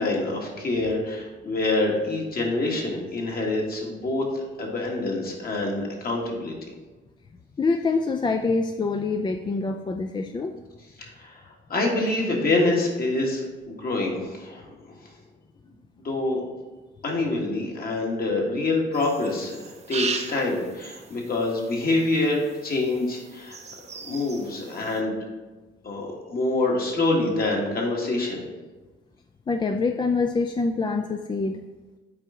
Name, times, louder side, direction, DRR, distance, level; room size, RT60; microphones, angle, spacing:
voice 1, 0.0-6.5 11.0-11.4 11.7-15.0 16.0-16.4 17.0-23.6 24.0-25.2 25.8-28.4, left 2 dB, 50° left, -1 dB, 1.7 m, -26 dB
voice 2, 7.6-10.5 29.5-31.6, left 4 dB, 25° left, 5 dB, 0.4 m, -25 dB
sound 1, 18.9-25.0, right 5 dB, 35° right, 0.6 m, -37 dB
7.8 x 4.6 x 3.8 m, 1.2 s
cardioid pair, 90°, 20 cm